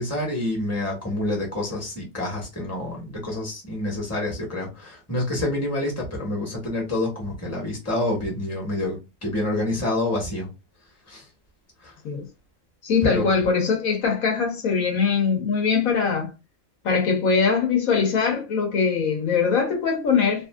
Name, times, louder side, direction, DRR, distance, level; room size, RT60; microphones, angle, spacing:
voice 1, 0.0-10.5 11.1-11.2 11.8-11.9 13.0-13.3, left 1 dB, 10° left, 1.2 m, -27 dB
voice 2, 12.8-16.3 16.8-20.5, left 5 dB, 75° left, 1.3 m, -22 dB
3.0 x 2.6 x 2.2 m
omnidirectional pair, 1.5 m